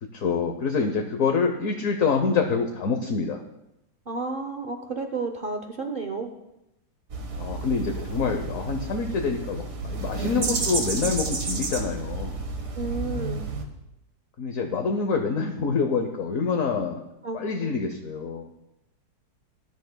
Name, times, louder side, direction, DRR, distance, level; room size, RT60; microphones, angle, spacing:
voice 1, 0.0-3.4 7.4-12.4 14.4-17.0 17.3-18.5, left 5 dB, 55° left, 4 dB, 1.0 m, -26 dB
voice 2, 4.1-6.4 12.8-13.4 17.2-17.8, right 3 dB, 75° right, 5 dB, 0.5 m, -32 dB
sound 1, 7.1-13.6, right 3 dB, 50° right, 1.7 m, -31 dB
20.0 x 11.0 x 2.2 m, 0.89 s
omnidirectional pair, 2.0 m